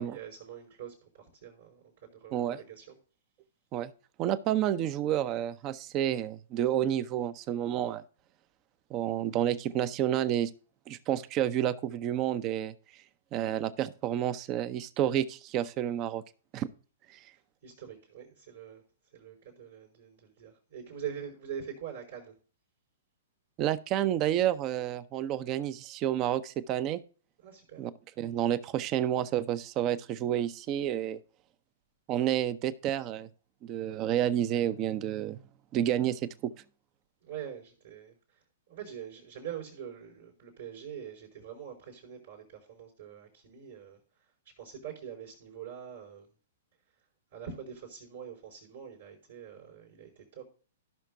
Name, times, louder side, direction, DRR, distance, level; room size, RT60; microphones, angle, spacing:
voice 1, 0.0-2.9 17.6-18.8 19.1-22.3 27.4-27.8 37.2-44.0 44.6-46.3 47.3-50.5, right 8 dB, 70° right, -8 dB, 4.7 m, -44 dB
voice 2, 4.2-8.0 8.9-10.5 10.9-12.7 13.3-16.2 16.5-16.7 17.1-17.2 23.6-27.0 27.8-27.9 28.2-31.2 32.1-33.3 33.6-35.4 35.7-36.5, right 11 dB, 35° right, 16 dB, 0.7 m, -30 dB
16.5 x 5.9 x 2.6 m, 0.39 s
hypercardioid pair, 115°, 0 cm